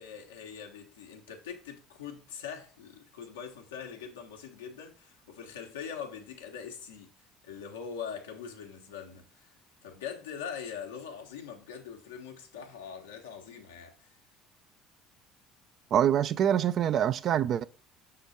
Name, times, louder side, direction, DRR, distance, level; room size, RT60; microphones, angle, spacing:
voice 1, 0.0-9.5 9.8-14.1, left 7 dB, 85° left, 1.1 m, -42 dB
voice 2, 15.9-17.6, right 10 dB, 50° right, 0.4 m, -25 dB
6.3 x 3.8 x 4.0 m
hypercardioid pair, 60°, 0 cm